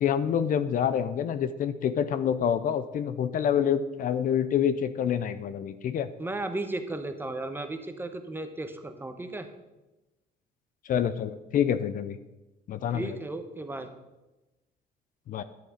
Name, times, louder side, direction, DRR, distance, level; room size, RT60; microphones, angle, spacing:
voice 1, 0.0-6.1 10.9-12.2 12.7-13.2 15.3-15.4, left 8 dB, 55° left, 12 dB, 0.6 m, -27 dB
voice 2, 6.2-9.5 12.9-13.9, right 2 dB, 10° right, 7 dB, 1.0 m, -35 dB
10.5 x 7.7 x 5.0 m, 1.0 s
cardioid pair, 110°, 17 cm